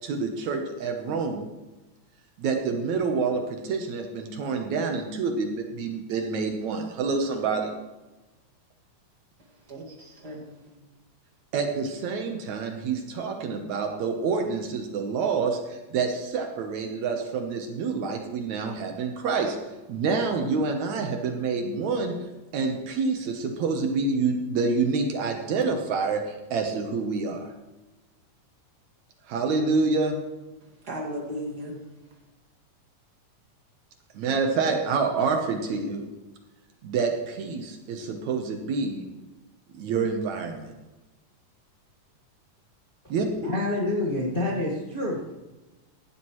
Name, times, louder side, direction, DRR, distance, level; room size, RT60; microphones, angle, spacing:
voice 1, 0.0-1.4 2.4-7.7 11.5-19.6 19.9-22.1 22.5-27.5 29.3-30.2 34.2-36.0 36.8-39.1 39.7-40.7 43.1-43.3, right 4 dB, 70° right, 2.2 m, -27 dB
voice 2, 9.4-10.8 30.6-32.1, equal, 35° right, 2.1 m, -37 dB
voice 3, 43.4-45.2, left 2 dB, 25° left, 1.2 m, -27 dB
16.0 x 11.5 x 3.1 m
omnidirectional pair, 3.7 m